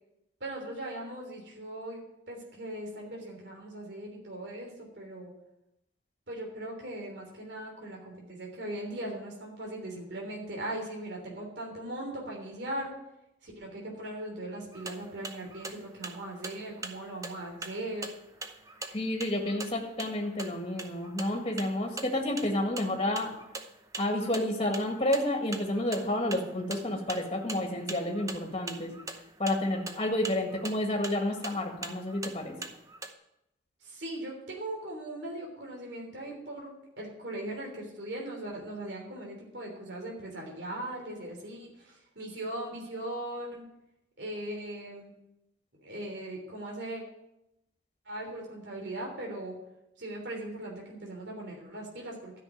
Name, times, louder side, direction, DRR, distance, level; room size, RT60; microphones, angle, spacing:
voice 1, 0.4-5.3 6.3-12.9 13.4-18.2 33.8-43.6 44.2-45.1 45.8-47.0 48.0-49.5 50.0-52.4, right 1 dB, 60° right, -1 dB, 3.3 m, -39 dB
sound 1, 14.7-33.1, right 3 dB, 15° right, 0.7 m, -43 dB
voice 2, 18.9-23.3 24.0-28.9 29.4-32.6, left 1 dB, 30° left, 1 dB, 1.9 m, -30 dB
12.5 x 6.1 x 9.6 m, 0.86 s
head